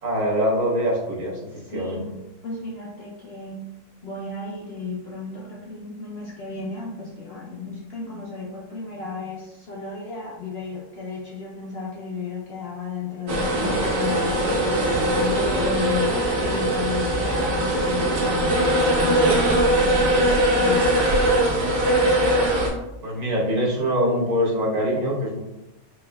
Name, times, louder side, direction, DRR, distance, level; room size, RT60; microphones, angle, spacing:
voice 1, 0.0-2.0 23.0-25.4, equal, 35° right, -3 dB, 0.7 m, -24 dB
voice 2, 1.5-2.1 2.4-3.7 4.0-14.8 15.2-21.1, left 4 dB, 65° left, -3 dB, 0.6 m, -34 dB
sound 1, 13.3-22.7, right 1 dB, 85° right, 1.4 m, -21 dB
4.4 x 2.8 x 2.2 m, 0.94 s
omnidirectional pair, 1.6 m